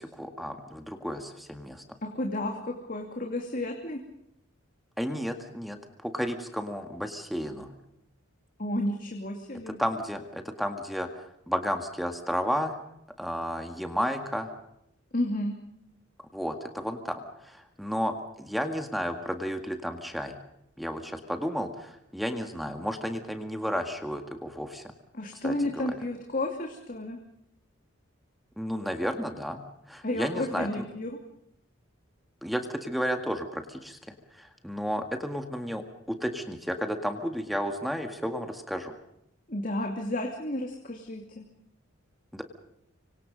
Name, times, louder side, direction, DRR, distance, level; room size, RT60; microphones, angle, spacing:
voice 1, 0.0-1.8 5.0-7.7 9.7-11.1 11.5-12.8 13.2-14.5 16.3-17.2 17.5-20.3 20.8-24.8 25.4-25.9 28.6-29.6 29.9-30.8 32.4-34.0 34.3-38.9 42.3-42.4, equal, ahead, 6 dB, 1.9 m, -32 dB
voice 2, 2.0-4.0 8.6-9.8 15.1-15.5 25.1-27.2 30.0-31.2 39.5-41.4, left 1 dB, 40° left, 2 dB, 2.6 m, -32 dB
25.5 x 25.5 x 5.3 m, 0.78 s
head